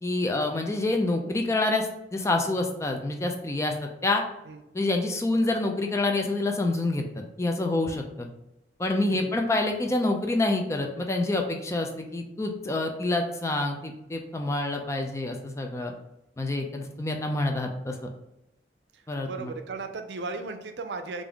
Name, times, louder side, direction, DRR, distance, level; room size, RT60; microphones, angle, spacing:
voice 1, 0.0-4.2 4.7-7.0 7.4-8.3 8.8-15.9 16.4-17.9 19.1-19.5, left 2 dB, 15° left, 3 dB, 0.4 m, -27 dB
voice 2, 18.9-21.2, right 3 dB, 80° right, 7 dB, 0.5 m, -37 dB
3.5 x 2.5 x 3.5 m, 0.87 s
head